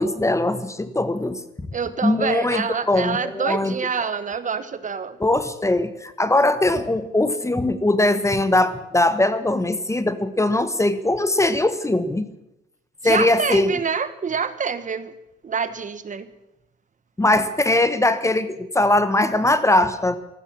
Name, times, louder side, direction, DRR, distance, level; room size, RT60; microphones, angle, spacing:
voice 1, 0.0-1.4 2.0-3.7 5.2-12.3 13.0-13.7 17.2-20.2, left 2 dB, 15° left, 12 dB, 1.2 m, -20 dB
voice 2, 1.7-5.2 13.0-15.1 15.4-16.3, right 6 dB, 40° right, 13 dB, 1.2 m, -26 dB
14.5 x 12.5 x 7.3 m, 0.89 s
cardioid pair, 90°, 20 cm